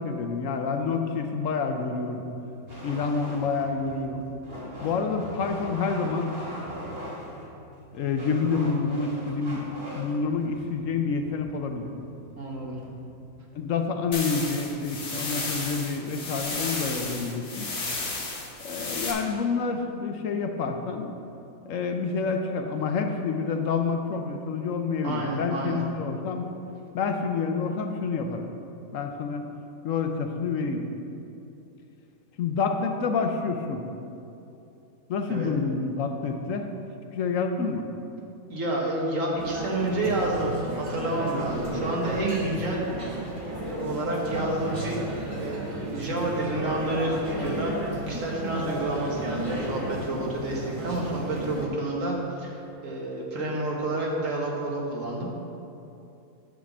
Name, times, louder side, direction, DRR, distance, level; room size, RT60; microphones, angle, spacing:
voice 1, 0.0-2.2 2.8-4.2 4.8-6.4 7.9-11.9 13.5-17.7 18.6-21.1 21.7-26.5 26.9-28.5 28.9-29.4 29.8-30.9 32.4-33.8 35.1-36.7 37.1-37.9, left 4 dB, 65° left, 5 dB, 1.0 m, -28 dB
sound 1, 2.7-13.7, equal, 40° right, 2.2 m, -41 dB
voice 2, 12.4-12.8 25.0-25.8 35.3-35.5 38.5-40.5 40.8-42.9 43.6-47.7 48.1-55.3, right 2 dB, 60° right, -2 dB, 1.6 m, -29 dB
sound 2, 14.1-19.1, left 3 dB, 50° left, 1.5 m, -33 dB
sound 3, 39.4-51.7, right 1 dB, 25° right, 1.0 m, -33 dB
9.3 x 3.8 x 7.1 m, 2.8 s
omnidirectional pair, 1.6 m